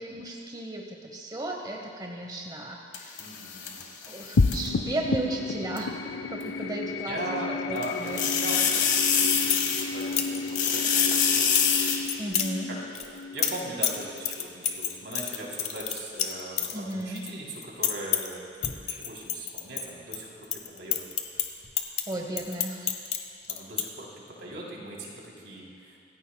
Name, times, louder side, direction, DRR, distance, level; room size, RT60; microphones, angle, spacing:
voice 1, 0.0-3.2 4.1-5.9 6.3-7.2 7.7-8.2 12.2-12.7 16.7-17.2 22.1-23.0, right 1 dB, 20° right, 0 dB, 1.0 m, -34 dB
sound 1, 2.9-4.7 5.8-5.9 7.8-10.2 10.5-12.0, left 7 dB, 70° left, 1.6 m, -25 dB
voice 2, 3.2-3.8 6.9-12.0 12.7-12.8 13.0-21.0 23.5-26.0, right 2 dB, 75° right, -3 dB, 3.3 m, -39 dB
sound 2, 4.4-15.0, left 4 dB, 90° left, 0.5 m, -32 dB
sound 3, 9.2-9.6 10.0-10.7 11.0-11.7 12.1-12.5 12.9-17.3 17.6-18.3 18.6-20.2 20.4-23.2 23.4-23.8, left 9 dB, 35° left, 1.0 m, -29 dB
26.0 x 15.5 x 2.3 m, 2.4 s
head